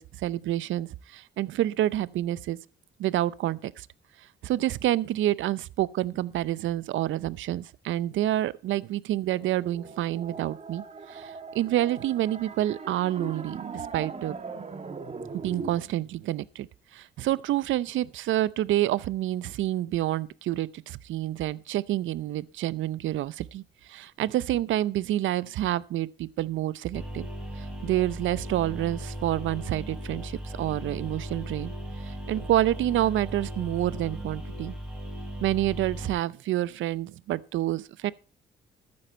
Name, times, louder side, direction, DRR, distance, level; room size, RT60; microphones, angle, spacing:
voice 1, 0.0-2.6 3.0-3.9 4.4-10.8 11.1-14.4 15.3-16.7 16.9-23.6 23.9-27.3 27.6-31.7 32.0-34.7 35.4-38.1, right 14 dB, 75° right, 0.6 m, -28 dB
sound 1, 9.3-15.8, right 4 dB, 35° right, 1.6 m, -40 dB
sound 2, 26.9-36.1, right 1 dB, 5° right, 5.2 m, -37 dB
13.5 x 9.6 x 4.4 m
cardioid pair, 90°, 20 cm